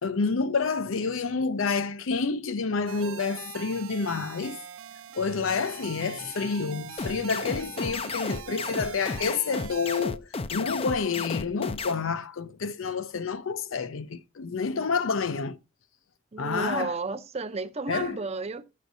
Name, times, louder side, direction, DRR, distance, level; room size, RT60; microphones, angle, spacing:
voice 1, 0.0-4.6 5.1-15.6 16.4-16.9 17.9-18.2, left 5 dB, 80° left, 0.6 m, -29 dB
sound 1, 2.9-10.1, right 8 dB, 85° right, 0.4 m, -42 dB
sound 2, 7.0-11.9, left 4 dB, 30° left, 0.4 m, -33 dB
voice 2, 16.3-18.6, right 4 dB, 30° right, 0.5 m, -32 dB
15.0 x 6.5 x 2.6 m
head